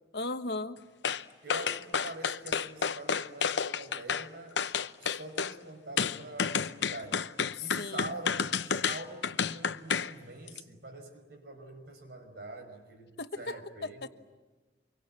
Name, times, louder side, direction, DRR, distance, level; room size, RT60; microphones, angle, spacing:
voice 1, 0.1-0.8 7.6-8.2 13.2-14.1, left 3 dB, 65° left, 9 dB, 1.2 m, -37 dB
sound 1, 1.0-1.2 1.5-4.3 4.6-5.5 6.0-10.1 10.5-10.6, left 6 dB, 85° left, 0.8 m, -30 dB
voice 2, 1.4-4.6 5.0-7.3 7.6-14.1, right 2 dB, 65° right, 5 dB, 5.0 m, -45 dB
26.5 x 23.5 x 8.8 m, 1.3 s
head